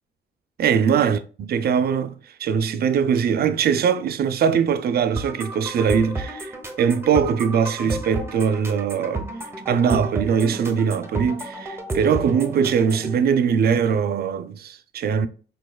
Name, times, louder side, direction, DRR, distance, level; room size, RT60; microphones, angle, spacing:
voice 1, 0.6-9.3 9.7-15.3, right 7 dB, 50° right, 0.4 m, -21 dB
sound 1, 5.2-13.1, right 2 dB, 10° right, 0.7 m, -32 dB
4.1 x 3.0 x 2.2 m
cardioid pair, 90°, 20 cm